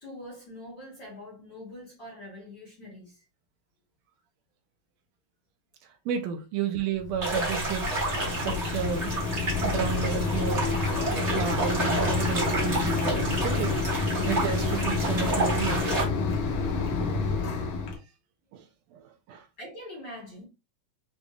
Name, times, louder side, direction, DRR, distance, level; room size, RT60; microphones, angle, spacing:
voice 1, 0.0-3.2 19.6-20.4, left 1 dB, 55° left, 1.3 m, -43 dB
voice 2, 6.0-7.9 8.3-9.2 9.6-10.6 11.3-13.9 14.3-15.8 18.5-18.6 18.9-19.4, right 8 dB, 75° right, 1.7 m, -32 dB
Mechanisms, 7.0-18.0, left 4 dB, 75° left, 2.2 m, -29 dB
sound 1, 7.2-16.0, right 2 dB, 40° right, 1.0 m, -30 dB
6.8 x 2.5 x 2.4 m
omnidirectional pair, 3.6 m